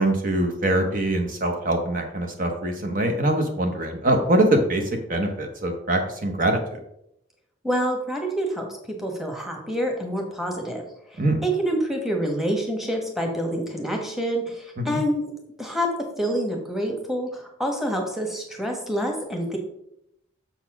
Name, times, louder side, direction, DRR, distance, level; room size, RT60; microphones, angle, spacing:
voice 1, 0.0-4.8 5.1-6.8 11.2-11.4 14.8-15.0, right 1 dB, 40° right, 4 dB, 0.9 m, -23 dB
voice 2, 7.6-8.7 9.0-10.8 11.1-15.2 15.6-15.9 16.2-19.6, equal, ahead, 1 dB, 1.2 m, -27 dB
6.8 x 4.2 x 5.9 m, 0.77 s
head